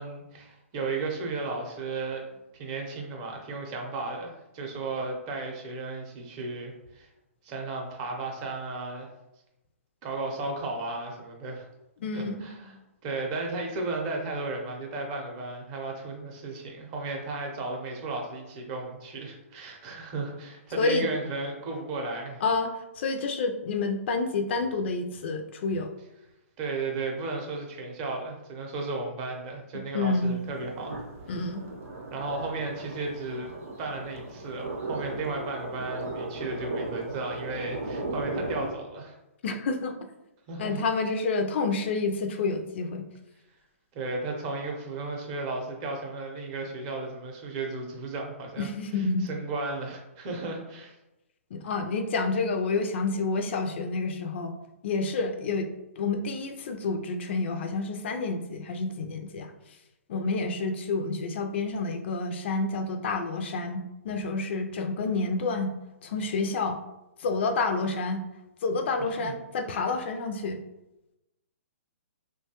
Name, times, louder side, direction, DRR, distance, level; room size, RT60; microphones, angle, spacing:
voice 1, 0.0-7.1 7.4-9.1 10.0-11.7 12.1-12.8 13.0-22.4 26.6-31.0 32.1-33.5 33.8-39.2 40.5-40.9 43.9-48.7 48.9-51.0 69.2-69.3, right 3 dB, 30° right, 1 dB, 0.6 m, -34 dB
voice 2, 12.0-12.4 20.8-21.1 22.4-25.9 29.9-30.4 31.3-31.6 39.4-39.9 40.6-43.1 48.6-49.3 51.5-54.6 54.8-55.7 56.0-59.5 60.1-65.7 66.0-66.8 67.2-68.2 68.6-70.6, left 3 dB, 55° left, 5 dB, 0.3 m, -29 dB
sound 1, 30.1-38.7, right 2 dB, 75° right, 0.6 m, -37 dB
2.9 x 2.2 x 2.8 m, 0.94 s
hypercardioid pair, 140°, 8 cm